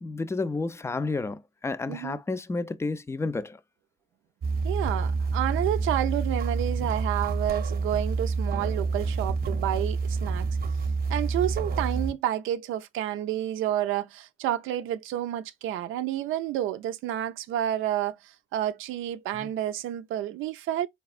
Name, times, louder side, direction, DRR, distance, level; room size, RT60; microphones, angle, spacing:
voice 1, 0.0-3.6 19.3-19.5, left 3 dB, 15° left, 0.4 m, -31 dB
voice 2, 1.9-2.2 4.6-10.5 11.1-20.9, right 12 dB, 85° right, 0.4 m, -30 dB
sound 1, 4.4-12.1, right 4 dB, 50° right, 0.7 m, -28 dB
4.1 x 3.4 x 2.3 m
cardioid pair, 90°, 20 cm